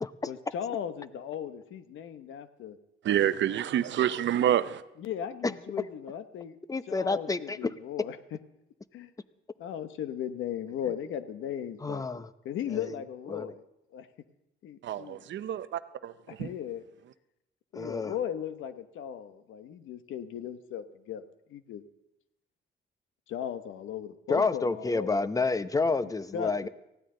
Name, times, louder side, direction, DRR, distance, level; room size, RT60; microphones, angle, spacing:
voice 1, 0.2-2.8 5.0-6.6 6.9-8.2 8.9-9.1 9.6-13.6 13.9-14.1 14.6-15.2 16.4-16.8 17.7-21.2 21.5-21.8 23.3-25.5 26.3-26.7, left 9 dB, 80° left, 1.0 m, -37 dB
voice 2, 3.0-4.8 14.8-16.5, right 11 dB, 65° right, 0.7 m, -28 dB
voice 3, 6.7-7.7 11.8-12.3 13.3-13.5 17.7-18.1 24.3-26.7, left 3 dB, 15° left, 0.7 m, -29 dB
19.0 x 15.0 x 3.8 m
cardioid pair, 90°, 20 cm